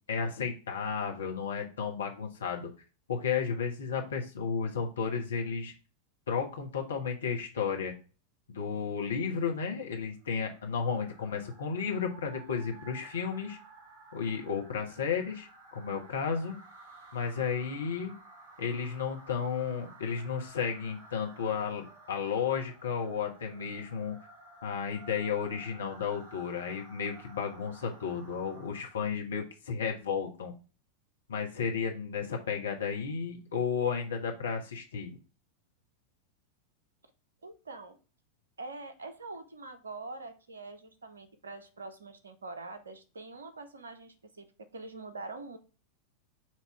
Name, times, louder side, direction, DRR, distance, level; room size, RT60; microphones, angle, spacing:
voice 1, 0.1-2.7 3.1-5.7 6.3-7.9 8.5-13.6 14.1-16.5 17.1-18.1 18.6-24.2 24.6-30.5 31.3-35.1, left 6 dB, 65° left, 2 dB, 1.3 m, -33 dB
sound 1, 10.2-29.1, right 2 dB, 55° right, 2.3 m, -54 dB
voice 2, 37.4-38.0 38.6-45.6, right 3 dB, 70° right, 10 dB, 0.9 m, -44 dB
7.5 x 3.0 x 4.9 m, 0.35 s
figure-of-eight pair, 90°, 0 cm